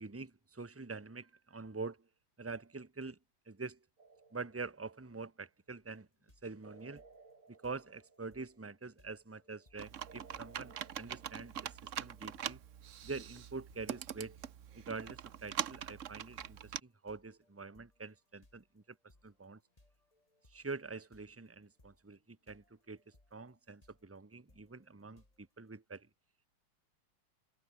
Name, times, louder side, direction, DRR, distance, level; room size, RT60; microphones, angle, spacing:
voice 1, 0.0-2.1 2.4-3.2 3.5-3.8 4.3-6.1 6.4-7.0 7.5-12.6 13.0-14.4 14.7-19.0 19.2-19.6 20.5-26.1, right 4 dB, 10° right, 0.8 m, -45 dB
sound 1, 4.0-5.3 6.6-8.8 10.1-12.2, right 4 dB, 40° right, 3.0 m, -61 dB
sound 2, 5.8-25.7, left 2 dB, 15° left, 3.2 m, -70 dB
Computer keyboard, 9.8-16.8, right 9 dB, 55° right, 0.8 m, -43 dB
omnidirectional pair, 2.3 m